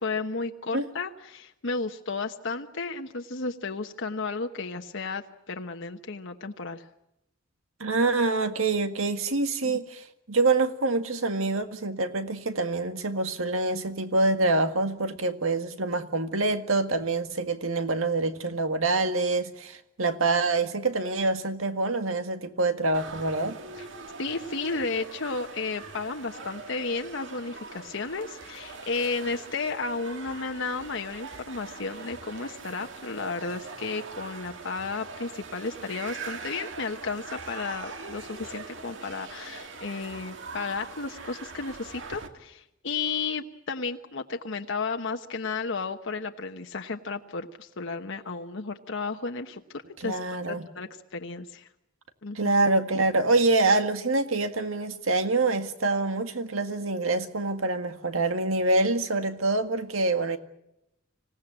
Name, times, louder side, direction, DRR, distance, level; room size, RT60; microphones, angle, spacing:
voice 1, 0.0-6.8 9.6-9.8 23.8-23.9 24.2-50.2 50.5-51.7 52.2-52.5, left 4 dB, 65° left, 4 dB, 1.1 m, -33 dB
voice 2, 7.8-23.6 50.0-50.7 52.3-60.4, right 3 dB, 90° right, 8 dB, 1.9 m, -26 dB
sound 1, 22.9-42.3, right 4 dB, 65° right, 2.1 m, -42 dB
26.0 x 17.0 x 8.9 m, 0.85 s
head